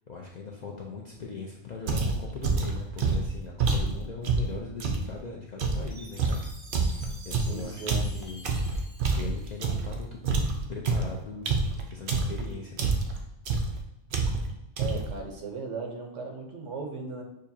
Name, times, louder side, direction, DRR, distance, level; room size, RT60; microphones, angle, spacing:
voice 1, 0.1-6.4 6.8-8.4 9.1-10.2 10.7-11.6 11.9-12.9, left 4 dB, 55° left, -1 dB, 0.5 m, -40 dB
sound 1, 1.9-5.1 5.6-10.0 10.2-12.4 12.8-13.2 13.4-13.8 14.1-14.5 14.8-15.2, right 4 dB, 55° right, 0.7 m, -27 dB
Chime, 5.9-10.2, right 1 dB, 30° right, 1.4 m, -50 dB
voice 2, 7.5-8.1 14.8-17.2, right 4 dB, 75° right, 2 dB, 1.2 m, -37 dB
6.6 x 2.5 x 2.7 m, 0.91 s
omnidirectional pair, 1.2 m